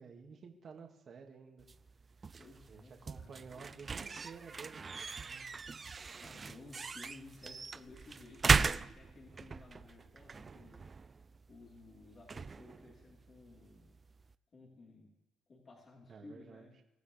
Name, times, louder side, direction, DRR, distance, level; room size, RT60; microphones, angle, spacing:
voice 1, 0.0-1.7 2.7-5.7 16.1-16.8, right 5 dB, 55° right, 2 dB, 2.3 m, -52 dB
sound 1, 1.6-14.3, right 5 dB, 35° right, 0.5 m, -38 dB
voice 2, 2.4-3.5 5.8-10.8 11.5-13.9 14.5-15.1 15.5-16.7, left 3 dB, 45° left, -3 dB, 4.2 m, -56 dB
24.0 x 14.5 x 3.5 m, 0.95 s
cardioid pair, 90°, 0 cm